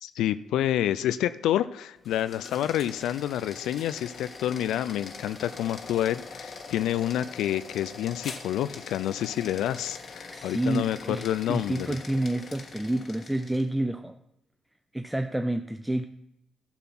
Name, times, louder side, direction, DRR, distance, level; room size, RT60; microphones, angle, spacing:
voice 1, 0.0-12.0, left 11 dB, 85° left, 13 dB, 0.3 m, -28 dB
sound 1, 2.0-13.7, left 4 dB, 40° left, 1.5 m, -43 dB
voice 2, 10.3-14.2 14.9-16.0, right 1 dB, 5° right, 8 dB, 0.5 m, -29 dB
12.0 x 5.8 x 6.0 m, 0.85 s
cardioid pair, 90°, 0 cm